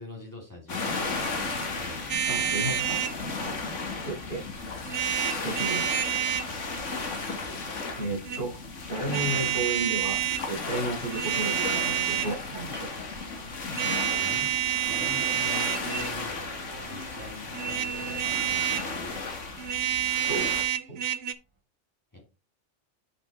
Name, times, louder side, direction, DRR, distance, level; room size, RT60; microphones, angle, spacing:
voice 1, 0.0-2.2 7.1-7.3 14.2-19.2 22.1-22.2, left 2 dB, 15° left, -1 dB, 2.6 m, -45 dB
sound 1, 0.7-20.6, left 3 dB, 80° left, 1.9 m, -35 dB
sound 2, 2.1-3.2 4.9-6.5 8.0-8.4 9.1-10.4 11.0-12.4 13.7-16.2 17.5-18.9 19.6-21.3, right 11 dB, 75° right, 1.0 m, -28 dB
voice 2, 2.3-3.0 4.0-4.4 5.4-5.9 8.0-8.6 8.9-12.9 20.3-20.5 20.9-21.0, right 2 dB, 50° left, -3 dB, 4.4 m, -33 dB
sound 3, 16.4-20.8 21.3-21.5, right 2 dB, 25° right, 1.4 m, -50 dB
7.0 x 5.9 x 4.2 m, 0.29 s
omnidirectional pair, 1.2 m